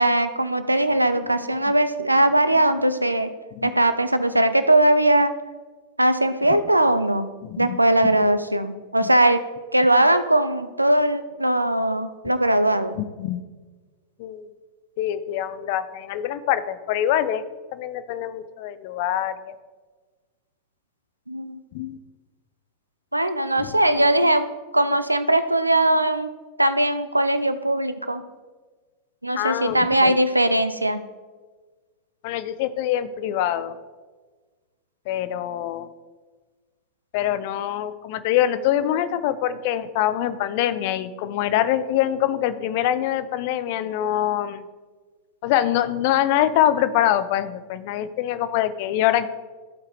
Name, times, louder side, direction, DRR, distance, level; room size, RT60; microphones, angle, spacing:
voice 1, 0.0-3.3 3.6-5.3 6.0-7.3 7.6-9.4 9.7-12.9 21.3-21.6 23.1-24.5 24.7-26.3 26.6-28.2 29.2-31.0, right 1 dB, 85° right, 11 dB, 0.4 m, -20 dB
voice 2, 7.4-8.2 9.0-9.1 13.0-13.4 14.2-14.5 15.0-17.4 17.7-19.5 21.7-22.0 23.6-24.0 29.3-30.2 32.2-33.8 35.1-35.9 37.1-44.6 45.4-49.3, left 11 dB, 50° left, 13 dB, 0.5 m, -24 dB
14.0 x 4.6 x 3.4 m, 1.4 s
figure-of-eight pair, 90°, 0 cm